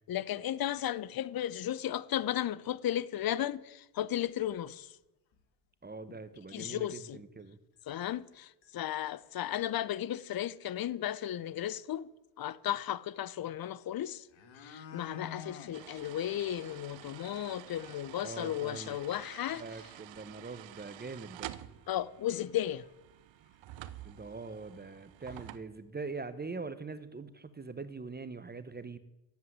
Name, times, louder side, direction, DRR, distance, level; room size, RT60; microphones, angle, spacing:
voice 1, 0.1-4.9 6.5-7.2 7.9-12.1 12.4-14.2 14.6-19.6 21.9-22.8, left 11 dB, 50° left, 0.8 m, -35 dB
sound 1, 5.3-5.4 5.9-6.0 6.3-6.4 7.4-7.5 8.1-8.3 8.6-8.7 9.1-9.5 10.9-11.0 11.3-11.4 13.7-13.8 14.1-15.7 16.1-16.2 16.6-16.7 17.1-17.2 17.5-17.6 20.4-20.5 20.9-21.0 21.7-21.8 22.3-22.5 22.8-23.6 23.9-24.0, left 6 dB, 70° left, 2.3 m, -49 dB
voice 2, 5.8-7.6 18.2-19.0 19.6-21.5 24.0-29.0, right 4 dB, 20° right, 1.0 m, -43 dB
sound 2, 15.7-25.6, right 13 dB, 65° right, 0.9 m, -49 dB
10.5 x 7.7 x 9.5 m
supercardioid pair, 65°, 48 cm